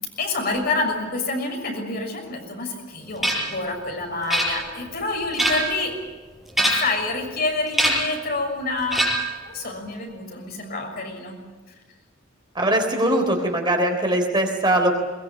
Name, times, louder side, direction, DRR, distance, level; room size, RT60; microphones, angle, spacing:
voice 1, 0.2-5.9 6.6-9.1 9.4-11.4, left 3 dB, 50° left, 2 dB, 6.5 m, -28 dB
sound 1, 3.2-3.6 4.3-4.9 5.2-5.8 6.5-7.0 7.7-8.2 8.9-9.4, right 1 dB, ahead, 6.0 m, -23 dB
voice 2, 12.6-14.9, right 1 dB, 25° right, 3 dB, 3.7 m, -21 dB
22.0 x 21.0 x 8.8 m, 1.3 s
head